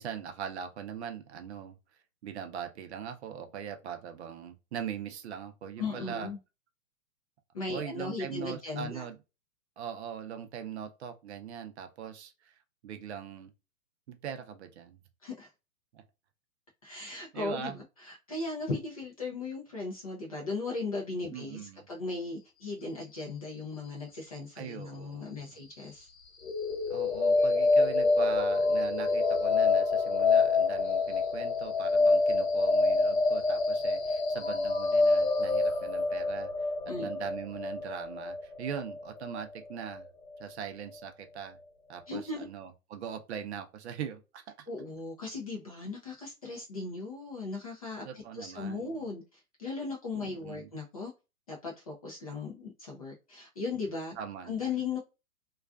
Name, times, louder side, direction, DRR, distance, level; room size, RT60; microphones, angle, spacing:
voice 1, 0.0-1.8 2.2-6.3 7.7-9.2 9.8-13.5 14.1-15.0 15.9-16.0 17.3-17.8 21.3-21.9 24.6-25.5 26.9-40.1 40.4-41.6 41.9-44.7 48.0-49.0 50.2-50.7 54.2-54.7, right 8 dB, 50° right, 0.6 m, -41 dB
voice 2, 5.8-6.4 7.5-9.1 15.2-15.5 16.8-26.1 36.9-37.1 42.1-42.5 44.7-51.1 51.5-54.2 54.4-55.0, left 3 dB, 30° left, 0.4 m, -37 dB
sound 1, 26.4-40.4, left 3 dB, 60° left, 0.9 m, -27 dB
2.3 x 2.3 x 2.3 m
hypercardioid pair, 130°, 44 cm